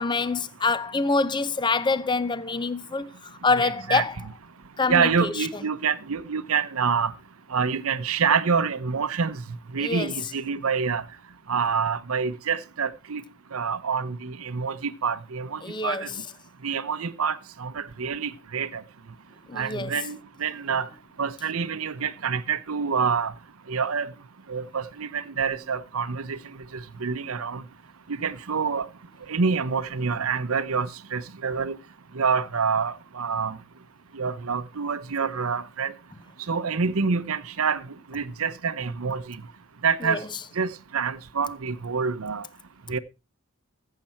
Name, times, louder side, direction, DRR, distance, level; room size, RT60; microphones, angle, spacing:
voice 1, 0.0-3.1 3.4-4.1 4.8-5.3 9.8-10.1 15.6-16.1 19.5-19.9 40.0-40.2, left 3 dB, 20° left, 0.6 m, -25 dB
voice 2, 3.6-4.0 4.9-7.1 7.5-9.4 9.7-11.0 11.5-13.2 13.5-14.8 15.0-16.1 16.6-18.8 19.5-20.9 21.2-23.3 23.7-24.1 24.5-26.4 27.0-27.6 28.1-28.9 29.3-31.8 32.2-33.6 34.1-35.9 36.5-37.8 38.1-39.4 39.8-40.2 40.6-42.4 42.9-43.0, right 5 dB, 70° right, 0.8 m, -27 dB
14.5 x 7.6 x 4.3 m
head